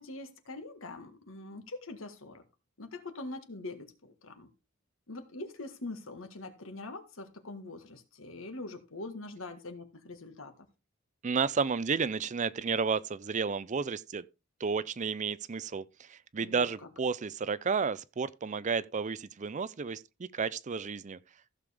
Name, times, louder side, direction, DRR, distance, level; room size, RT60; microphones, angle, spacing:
voice 1, 0.0-2.4 2.8-4.5 5.1-10.5 16.4-16.6, left 2 dB, 75° left, 1.7 m, -43 dB
voice 2, 11.2-14.2 14.6-21.2, right 5 dB, 35° right, 0.5 m, -32 dB
15.0 x 6.8 x 3.5 m
head